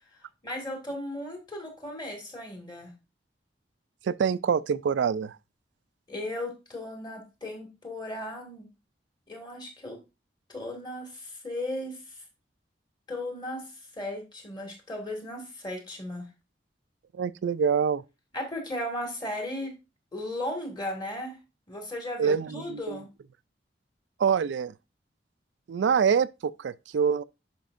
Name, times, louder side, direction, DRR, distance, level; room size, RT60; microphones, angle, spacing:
voice 1, 0.4-2.9 6.1-8.7 9.3-10.0 10.5-12.2 13.1-16.3 18.3-19.7 20.1-21.4 21.7-23.1, left 1 dB, 25° left, 1.9 m, -36 dB
voice 2, 4.0-5.4 17.1-18.0 22.2-23.0 24.2-24.7 25.7-27.2, right 6 dB, 85° right, 0.3 m, -25 dB
10.5 x 5.2 x 2.5 m
head